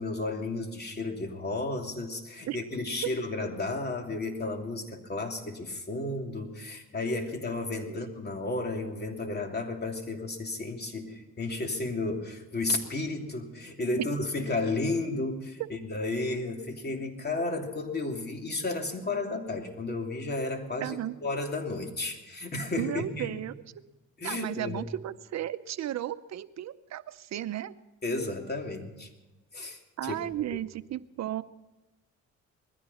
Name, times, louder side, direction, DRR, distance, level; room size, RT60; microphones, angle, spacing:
voice 1, 0.0-23.4 24.2-24.8 28.0-29.1 29.5-30.2 30.5-30.6, left 2 dB, 35° left, 3 dB, 2.9 m, -33 dB
voice 2, 20.8-21.1 22.8-23.5 24.2-27.7 30.0-31.4, right 12 dB, 60° right, 13 dB, 0.7 m, -34 dB
20.5 x 15.0 x 4.2 m, 1.1 s
cardioid pair, 90°, 30 cm